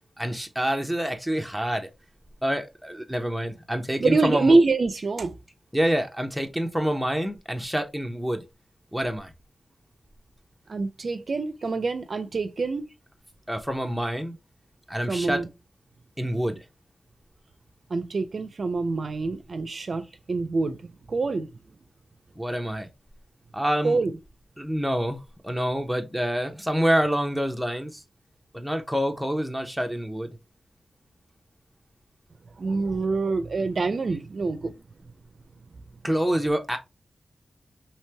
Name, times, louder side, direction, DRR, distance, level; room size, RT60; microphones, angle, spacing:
voice 1, 0.2-1.9 2.4-4.6 5.7-8.4 8.9-9.3 13.5-14.4 14.9-15.4 16.2-16.6 22.4-22.9 23.5-24.0 24.6-28.0 28.5-30.4 36.0-36.8, equal, ahead, 0.7 m, -27 dB
voice 2, 4.0-5.4 10.7-12.8 15.1-15.5 17.9-21.5 23.8-24.1 32.6-34.7, right 3 dB, 60° right, 0.5 m, -25 dB
3.1 x 2.9 x 3.3 m
wide cardioid pair, 90°, 0 cm